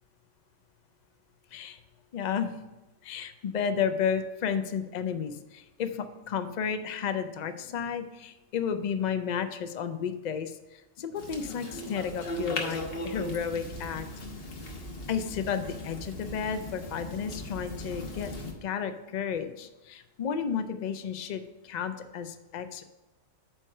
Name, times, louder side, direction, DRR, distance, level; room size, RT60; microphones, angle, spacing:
voice 1, 2.1-2.5 3.0-14.1 15.1-22.8, left 7 dB, 80° left, 10 dB, 0.4 m, -32 dB
sound 1, 11.2-18.5, left 1 dB, 50° left, 1.2 m, -38 dB
8.7 x 3.2 x 6.5 m, 1.0 s
omnidirectional pair, 1.4 m